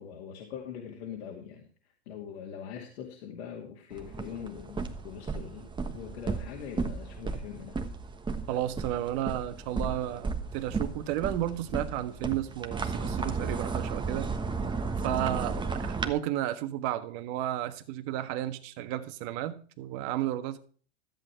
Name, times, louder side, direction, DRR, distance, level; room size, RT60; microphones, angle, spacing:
voice 1, 0.0-1.7 2.1-7.8, left 8 dB, 70° left, 2.4 m, -42 dB
sound 1, 3.9-16.1, right 4 dB, 15° right, 1.3 m, -34 dB
voice 2, 8.5-14.3 15.0-20.6, right 13 dB, 55° right, 1.5 m, -32 dB
13.5 x 7.8 x 4.5 m
hypercardioid pair, 110°, 33 cm